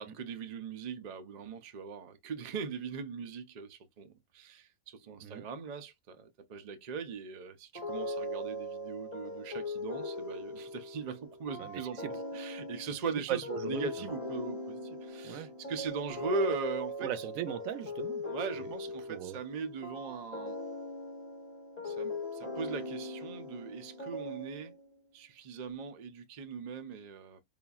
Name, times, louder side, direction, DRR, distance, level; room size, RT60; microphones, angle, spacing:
voice 1, 0.0-12.0 12.3-17.1 18.2-20.6 21.8-24.7 25.1-27.4, right 5 dB, 85° right, 0.3 m, -40 dB
sound 1, 7.7-24.9, left 1 dB, 10° left, 0.7 m, -40 dB
voice 2, 11.6-12.2 13.3-13.9 15.2-15.5 17.0-18.2 18.6-18.7 19.1-19.4, right 11 dB, 70° right, 0.9 m, -38 dB
5.1 x 2.5 x 2.3 m
omnidirectional pair, 1.6 m